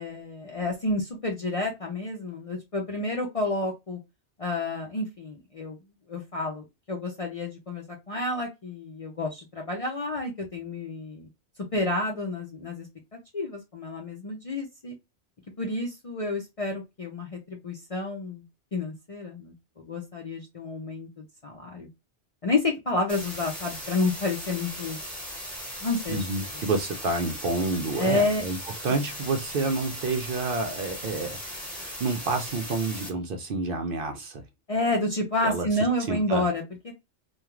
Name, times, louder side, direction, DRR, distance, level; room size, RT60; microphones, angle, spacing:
voice 1, 0.0-4.0 4.4-5.8 6.1-11.3 11.7-14.9 15.6-18.4 18.7-19.5 19.9-21.9 22.4-25.0 25.8-26.3 28.0-28.4 34.7-36.9, left 2 dB, 45° left, 0.5 m, -30 dB
sound 1, 23.1-33.1, equal, ahead, 1.1 m, -38 dB
voice 2, 26.1-34.4 35.4-35.7 36.1-36.4, right 3 dB, 60° right, 0.6 m, -29 dB
2.4 x 2.3 x 2.9 m
omnidirectional pair, 1.2 m